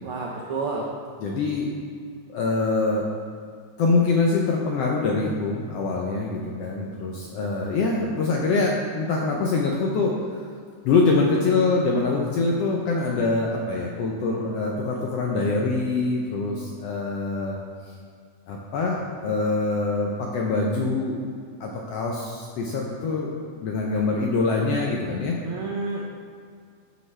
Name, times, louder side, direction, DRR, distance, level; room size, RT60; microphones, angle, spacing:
voice 1, 0.0-0.9 25.4-26.0, right 4 dB, 85° right, -2 dB, 1.2 m, -30 dB
voice 2, 1.2-1.7 2.3-3.1 3.8-10.5 10.8-17.6 18.5-21.2 21.6-25.4, left 3 dB, 80° left, -1 dB, 1.4 m, -24 dB
10.5 x 5.4 x 3.3 m, 2.2 s
omnidirectional pair, 3.4 m